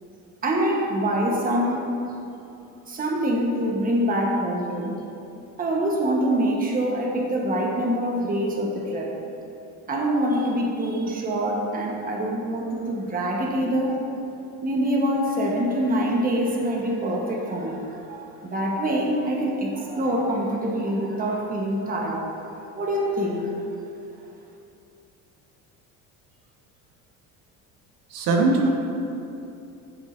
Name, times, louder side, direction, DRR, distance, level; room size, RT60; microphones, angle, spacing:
voice 1, 0.4-1.9 2.9-5.0 5.6-9.1 9.9-14.0 14.6-22.3 22.7-23.6, right 1 dB, 25° right, -1 dB, 1.2 m, -25 dB
voice 2, 28.1-28.7, right 3 dB, 85° right, 1 dB, 1.3 m, -20 dB
14.5 x 7.2 x 2.7 m, 2.8 s
cardioid pair, 130°, 34 cm